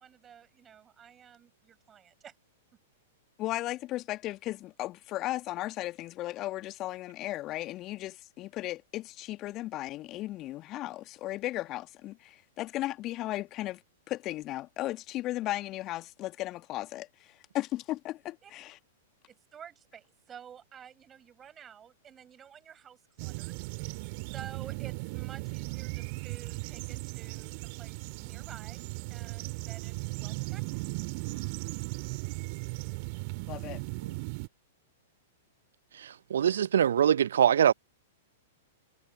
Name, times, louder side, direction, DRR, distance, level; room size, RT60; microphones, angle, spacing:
voice 1, 0.0-2.3 18.4-18.5 19.3-28.8 29.1-30.8, right 8 dB, 20° right, 7.3 m, -51 dB
voice 2, 3.4-18.8 33.5-33.8, left 16 dB, 35° left, 1.9 m, -36 dB
sound 1, 23.2-34.5, right 30 dB, 45° right, 2.4 m, -37 dB
voice 3, 36.0-37.7, right 9 dB, 65° right, 0.7 m, -23 dB
figure-of-eight pair, 105°, 0 cm